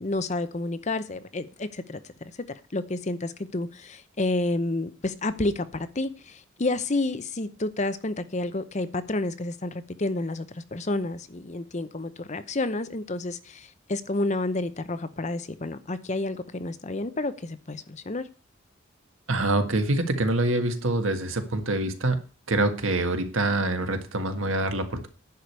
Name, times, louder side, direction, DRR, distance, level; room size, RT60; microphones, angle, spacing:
voice 1, 0.0-2.0 2.7-9.7 10.0-18.3, left 2 dB, 35° left, 12 dB, 0.8 m, -30 dB
voice 2, 19.3-22.2 22.5-25.1, right 2 dB, 80° right, 7 dB, 1.7 m, -25 dB
10.5 x 5.0 x 8.2 m, 0.36 s
head